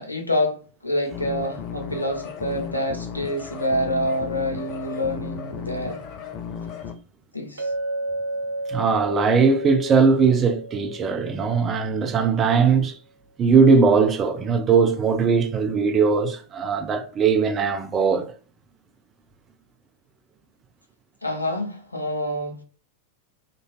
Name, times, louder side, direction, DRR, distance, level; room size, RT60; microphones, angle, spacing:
voice 1, 0.0-6.0 7.3-7.7 21.2-22.6, left 1 dB, 85° left, 0.5 m, -27 dB
sound 1, 1.1-6.9, left 7 dB, 40° left, 0.5 m, -35 dB
Chink clink, 7.6-12.0, right 2 dB, 70° right, 0.7 m, -32 dB
voice 2, 8.7-12.9 13.4-18.3, right 5 dB, 25° right, 0.5 m, -19 dB
3.0 x 2.5 x 2.4 m
figure-of-eight pair, 90°, 0 cm